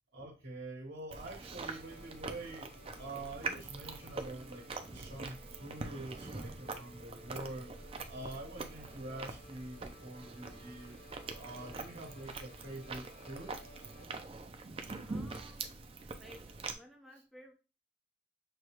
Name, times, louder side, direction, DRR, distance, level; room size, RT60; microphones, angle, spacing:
voice 1, 0.1-7.7 8.0-11.0 11.4-13.6, right 2 dB, 70° right, -3 dB, 1.4 m, -46 dB
Chewing mastication, 1.1-16.7, right 3 dB, 30° right, 0.5 m, -44 dB
sound 1, 1.6-14.1, left 2 dB, 55° left, 1.0 m, -58 dB
voice 2, 15.0-15.8 16.2-17.5, equal, ahead, 0 dB, 0.9 m, -56 dB
6.4 x 2.3 x 3.0 m, 0.31 s
head